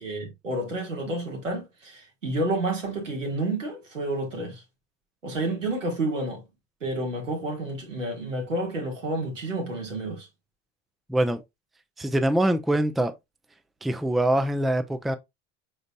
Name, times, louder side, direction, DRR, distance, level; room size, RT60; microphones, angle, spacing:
voice 1, 0.0-4.6 5.2-6.4 6.8-10.3, right 2 dB, 90° right, 1.7 m, -30 dB
voice 2, 11.1-11.4 12.0-13.1 13.8-15.2, right 1 dB, ahead, 0.5 m, -24 dB
5.1 x 4.1 x 2.3 m
figure-of-eight pair, 65°, 37 cm